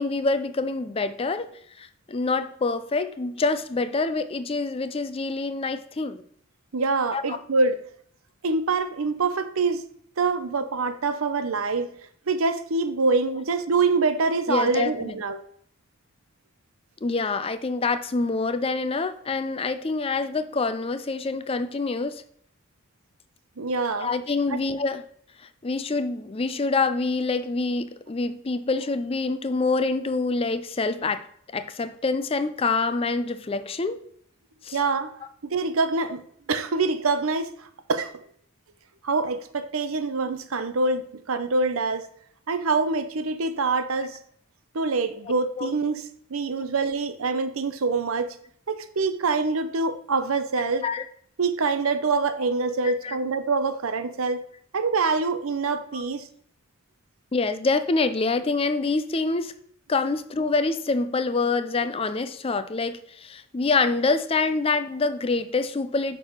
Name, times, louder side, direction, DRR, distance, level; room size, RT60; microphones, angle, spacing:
voice 1, 0.0-1.5 1.8-6.2 7.1-7.2 14.5-15.1 17.0-22.2 24.0-25.0 25.4-31.3 31.5-34.0 34.6-34.8 45.6-45.7 50.8-51.0 52.8-53.2 55.9-56.0 57.3-59.5 59.9-66.2, left 3 dB, 25° left, 0.4 m, -26 dB
voice 2, 6.7-7.8 8.4-9.8 10.2-11.9 12.3-15.4 23.6-24.1 34.7-35.1 35.4-36.2 36.5-38.1 39.0-42.0 42.5-44.2 44.7-46.0 46.3-48.4 48.7-50.8 51.4-54.4 54.7-56.3, right 4 dB, 80° right, 0.7 m, -25 dB
6.0 x 4.8 x 6.4 m
head